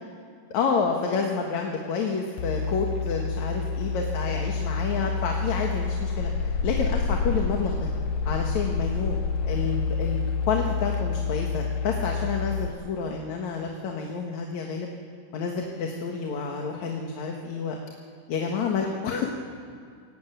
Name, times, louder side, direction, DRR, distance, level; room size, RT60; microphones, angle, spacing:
voice 1, 0.5-7.9 8.3-9.2 9.4-14.9 15.3-17.8 18.3-19.3, left 5 dB, 65° left, 1 dB, 2.9 m, -29 dB
sound 1, 2.4-12.7, left 4 dB, 90° left, 2.7 m, -28 dB
28.0 x 17.0 x 9.2 m, 2.2 s
omnidirectional pair, 3.6 m